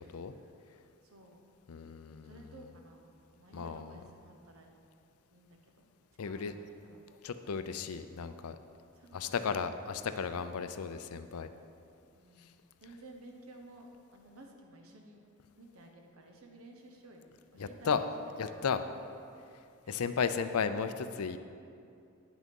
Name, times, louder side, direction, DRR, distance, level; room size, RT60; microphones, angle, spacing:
voice 1, 1.0-1.4 2.2-3.1 3.4-4.7 5.3-5.9 6.2-7.1 8.9-9.5 12.2-12.5 12.8-15.2 15.5-18.6 19.8-20.0, right 1 dB, 80° right, 2 dB, 1.1 m, -54 dB
voice 2, 1.7-2.4 3.5-3.9 6.2-6.5 7.2-8.6 9.1-11.5 17.6-18.0 18.4-18.8 19.9-21.4, left 6 dB, 90° left, 10 dB, 0.5 m, -34 dB
9.5 x 6.2 x 5.3 m, 2.5 s
head